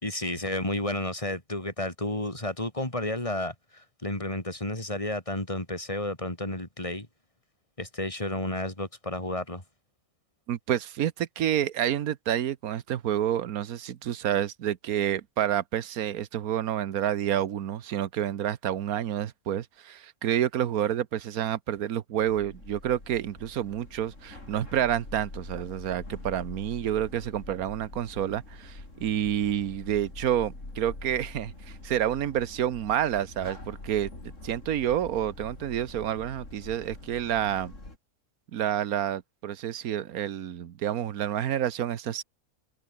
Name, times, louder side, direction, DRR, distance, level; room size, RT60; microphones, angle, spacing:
voice 1, 0.0-7.1 7.8-9.6, left 1 dB, 20° left, 4.1 m, -32 dB
voice 2, 10.5-37.7 38.5-42.2, right 10 dB, 70° right, 1.4 m, -29 dB
sound 1, 22.2-38.0, left 2 dB, 50° left, 5.7 m, -44 dB
omnidirectional pair, 1.6 m